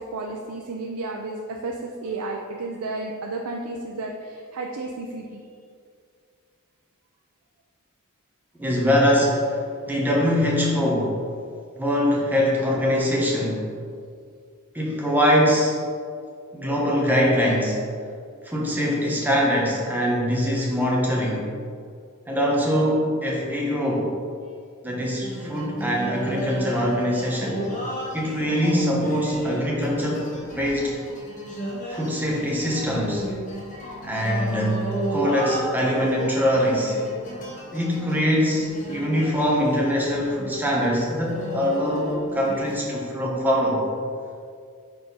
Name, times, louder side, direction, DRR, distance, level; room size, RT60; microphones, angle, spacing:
voice 1, 0.0-1.7 2.0-5.4, right 2 dB, 85° right, 0 dB, 0.5 m, -32 dB
voice 2, 8.6-11.2 11.7-13.7 14.7-15.8 16.5-17.8 18.4-21.5 22.3-24.1 24.8-27.6 28.1-30.3 30.6-30.9 31.9-33.3 34.0-37.0 37.7-43.9, equal, 10° right, -3 dB, 1.0 m, -23 dB
sound 1, 25.2-42.7, equal, 35° left, 1.3 m, -34 dB
4.4 x 4.2 x 5.3 m, 2.3 s
head